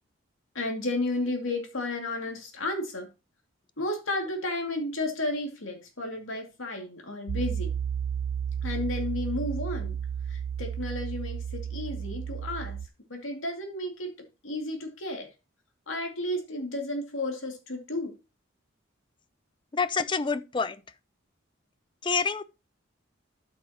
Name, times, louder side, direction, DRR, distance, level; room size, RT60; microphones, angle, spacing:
voice 1, 0.5-3.1 3.8-7.7 8.6-10.0 10.3-12.8 13.1-14.1 14.4-15.3 15.9-18.1, left 2 dB, 80° left, 2.4 m, -32 dB
Piano, 7.3-12.9, right 8 dB, 85° right, 0.4 m, -32 dB
voice 2, 19.7-20.8 22.0-22.4, left 5 dB, 25° left, 0.4 m, -27 dB
12.5 x 6.0 x 2.9 m
head